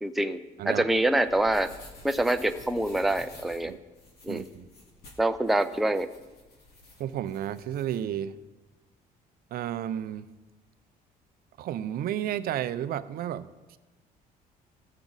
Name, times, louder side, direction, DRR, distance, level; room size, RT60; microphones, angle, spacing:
voice 1, 0.0-1.7 2.0-3.7 4.2-4.5 5.2-6.1, right 1 dB, ahead, 8 dB, 0.5 m, -26 dB
sound 1, 0.9-8.0, left 2 dB, 70° left, 2.3 m, -51 dB
voice 2, 4.3-4.7 7.0-8.3 9.5-10.3 11.6-13.8, right 11 dB, 65° right, 13 dB, 0.5 m, -32 dB
16.5 x 7.1 x 4.0 m, 1.2 s
cardioid pair, 110°, 17 cm